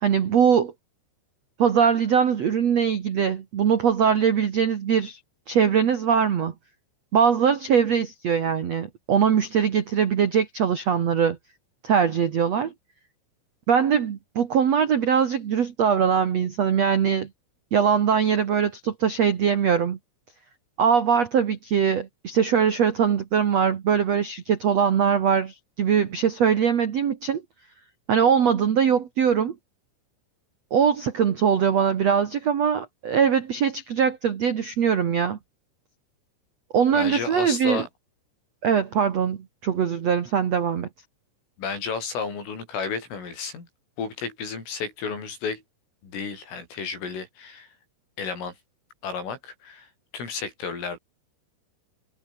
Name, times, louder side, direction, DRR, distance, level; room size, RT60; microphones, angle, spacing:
voice 1, 0.0-0.7 1.6-5.2 5.5-6.5 7.1-11.4 11.8-12.7 13.7-17.3 17.7-20.0 20.8-27.4 28.1-29.5 30.7-35.4 36.7-37.8 38.6-40.9, right 7 dB, 80° right, 1.4 m, -22 dB
voice 2, 36.9-37.9 41.6-43.7 44.0-45.6 46.0-47.7 48.2-48.5 49.0-49.9 50.1-51.0, left 5 dB, 75° left, 9.9 m, -32 dB
omnidirectional pair, 5.8 m